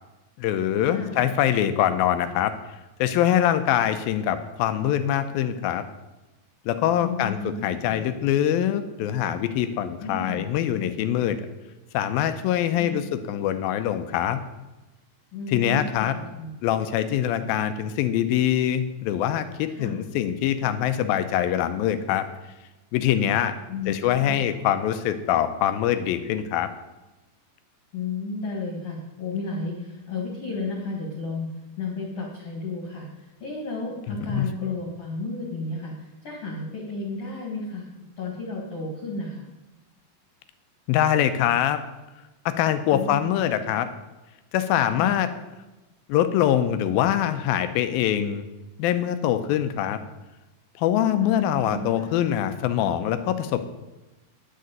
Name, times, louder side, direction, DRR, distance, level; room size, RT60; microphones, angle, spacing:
voice 1, 0.4-2.5 3.0-5.9 6.7-11.4 11.9-14.4 15.5-16.2 16.6-22.3 22.9-23.5 23.9-26.7 34.1-34.5 40.9-41.8 42.5-43.9 44.5-45.3 46.1-48.4 48.8-50.0 50.8-53.6, left 10 dB, 90° left, 10 dB, 2.5 m, -24 dB
voice 2, 0.9-1.2 7.0-8.0 10.0-10.4 12.8-13.1 15.3-16.5 19.7-20.0 23.7-24.4 27.9-31.5 31.8-37.9 38.2-39.4 42.9-43.2 45.0-45.1 51.2-52.1, left 3 dB, 45° left, -3 dB, 2.8 m, -33 dB
10.5 x 6.6 x 9.1 m, 1.1 s
omnidirectional pair, 4.2 m